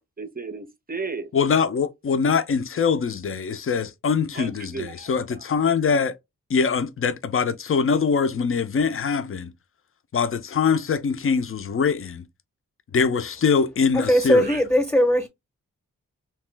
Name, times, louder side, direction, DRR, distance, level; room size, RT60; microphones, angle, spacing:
voice 1, 0.2-1.3 4.3-5.1 14.5-14.6, right 4 dB, 25° right, 0.6 m, -33 dB
voice 2, 1.3-6.2 6.5-9.5 10.1-12.2 12.9-14.4, left 5 dB, 40° left, 0.5 m, -23 dB
voice 3, 13.9-15.3, equal, 10° left, 0.8 m, -19 dB
2.9 x 2.1 x 3.2 m
cardioid pair, 45°, 34 cm